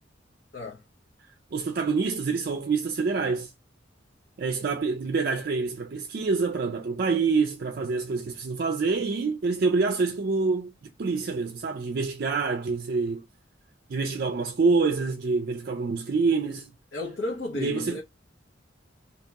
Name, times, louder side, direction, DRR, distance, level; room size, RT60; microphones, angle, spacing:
voice 1, 1.5-3.5 4.4-10.7 11.0-13.2 13.9-16.7 17.5-18.0, right 4 dB, 55° right, 0.4 m, -26 dB
voice 2, 16.9-18.0, left 2 dB, 65° left, 0.9 m, -33 dB
2.9 x 2.8 x 3.4 m
head